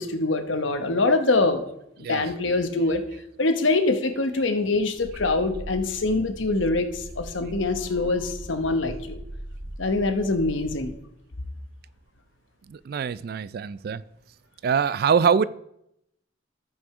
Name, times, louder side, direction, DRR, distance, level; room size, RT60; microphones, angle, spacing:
voice 1, 0.0-1.6 2.1-3.0 3.4-9.2 9.8-10.9, left 3 dB, 80° left, 1.0 m, -24 dB
sound 1, 5.0-10.9, right 1 dB, 90° right, 2.1 m, -39 dB
voice 2, 12.7-14.0 14.6-15.5, right 6 dB, 50° right, 0.3 m, -23 dB
14.0 x 4.9 x 4.8 m
head